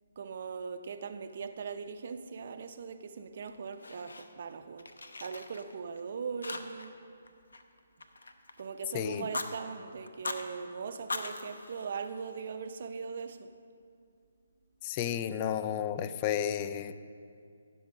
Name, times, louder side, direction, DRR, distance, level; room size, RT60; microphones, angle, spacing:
voice 1, 0.2-4.9 5.2-7.0 8.6-13.5, right 5 dB, 55° right, 0.6 m, -40 dB
Fire, 3.4-4.5 4.8-6.0 6.4-7.0 7.2-8.7 9.1-9.5 10.1-10.4 10.9-12.5, left 2 dB, 90° left, 0.8 m, -41 dB
voice 2, 8.9-9.2 14.8-16.9, left 9 dB, 30° left, 0.4 m, -32 dB
15.5 x 6.2 x 5.4 m
hypercardioid pair, 155°, 0 cm